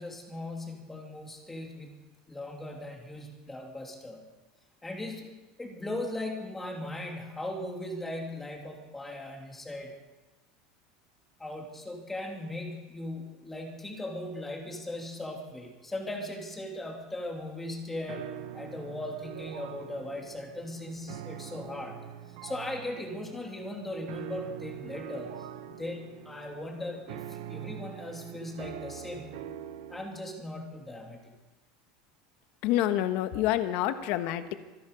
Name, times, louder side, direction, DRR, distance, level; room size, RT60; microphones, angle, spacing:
voice 1, 0.0-1.9 2.3-4.2 4.8-5.3 5.6-9.9 11.4-22.0 22.4-29.4 29.9-31.3, left 1 dB, 10° left, 1 dB, 2.6 m, -38 dB
sound 1, 18.1-30.1, right 11 dB, 75° right, 1.1 m, -43 dB
voice 2, 32.6-34.5, left 13 dB, 60° left, 10 dB, 1.3 m, -27 dB
25.5 x 10.5 x 5.3 m, 1.1 s
supercardioid pair, 150°, 2 cm